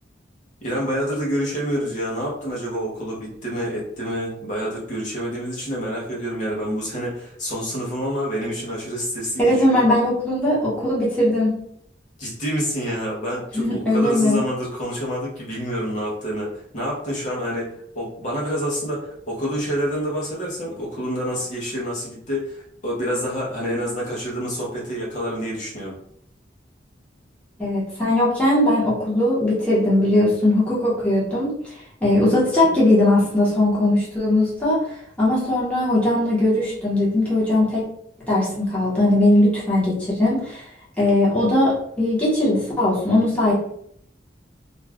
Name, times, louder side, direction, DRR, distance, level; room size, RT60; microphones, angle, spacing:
voice 1, 0.6-9.9 12.2-26.0, equal, 45° left, -5 dB, 0.9 m, -27 dB
voice 2, 9.4-11.5 13.5-14.4 27.6-31.5 32.0-34.8 35.2-37.8 38.3-40.6 41.0-43.5, left 1 dB, 10° left, -8 dB, 1.0 m, -19 dB
2.5 x 2.3 x 3.4 m, 0.69 s
head